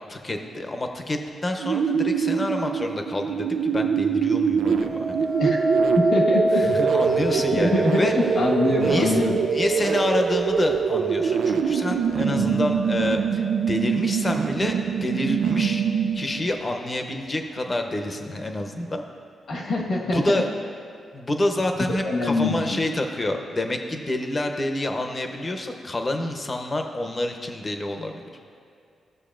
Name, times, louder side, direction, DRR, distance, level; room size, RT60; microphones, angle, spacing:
voice 1, 0.1-5.3 6.5-8.1 8.8-15.9 16.1-19.0 20.1-20.5 21.1-28.2, left 1 dB, 30° left, 4 dB, 0.8 m, -28 dB
sound 1, 1.6-16.5, right 7 dB, 80° right, 0.3 m, -24 dB
sound 2, 4.7-13.9 14.4-14.9, right 1 dB, 30° right, 1.0 m, -28 dB
voice 2, 5.9-6.6 7.3-9.4 12.3-12.6 19.5-20.3 22.0-22.8, left 2 dB, 70° left, -2 dB, 1.4 m, -24 dB
14.5 x 6.4 x 2.5 m, 2.3 s
cardioid pair, 75°, 0 cm